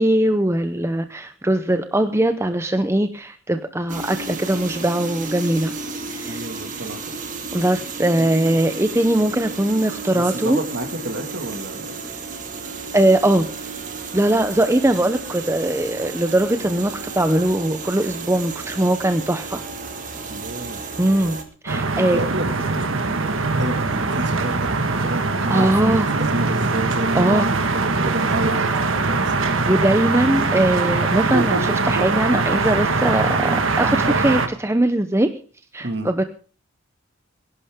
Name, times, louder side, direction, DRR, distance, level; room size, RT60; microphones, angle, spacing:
voice 1, 0.0-5.7 6.1-6.5 7.5-10.6 12.9-13.7 14.1-19.6 21.0-22.2 25.5-26.1 27.1-27.5 29.6-35.4 35.7-36.2, right 1 dB, 15° right, 9 dB, 0.7 m, -20 dB
sound 1, 3.9-21.4, right 4 dB, 40° right, 1.9 m, -33 dB
voice 2, 6.3-7.2 10.1-12.0 20.3-21.4 22.1-29.3 35.8-36.1, right 1 dB, 55° right, 6 dB, 2.0 m, -30 dB
sound 2, 21.7-34.5, right 3 dB, 80° right, 1.5 m, -22 dB
22.5 x 11.0 x 3.6 m, 0.39 s
head